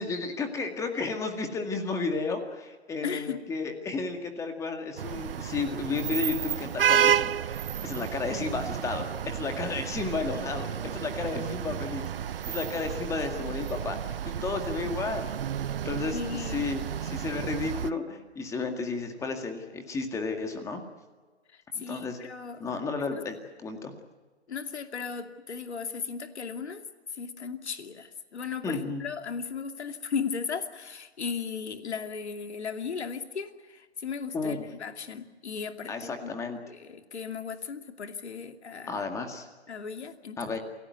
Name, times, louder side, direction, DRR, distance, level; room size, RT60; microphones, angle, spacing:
voice 1, 0.0-12.1 12.5-14.0 14.3-15.5 15.8-20.8 21.7-22.2 22.6-23.9 28.6-29.0 34.3-34.6 35.9-36.6 38.9-39.5 40.4-40.6, left 4 dB, 10° left, 5 dB, 2.0 m, -33 dB
voice 2, 3.0-3.4 16.1-16.6 21.5-22.6 23.1-23.2 24.5-26.8 27.1-36.3 36.6-39.0 39.7-40.6, left 6 dB, 75° left, 7 dB, 2.6 m, -36 dB
sound 1, 5.0-17.9, right 9 dB, 55° right, 0.9 m, -31 dB
28.0 x 17.0 x 9.3 m, 1.3 s
hypercardioid pair, 150°, 34 cm